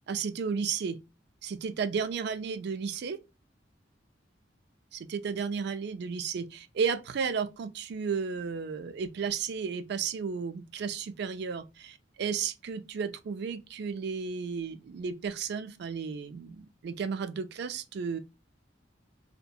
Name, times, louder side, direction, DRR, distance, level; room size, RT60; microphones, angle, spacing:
voice 1, 0.1-1.0 1.4-3.2 4.9-18.2, right 6 dB, 60° right, 0.3 m, -33 dB
2.7 x 2.1 x 2.2 m
head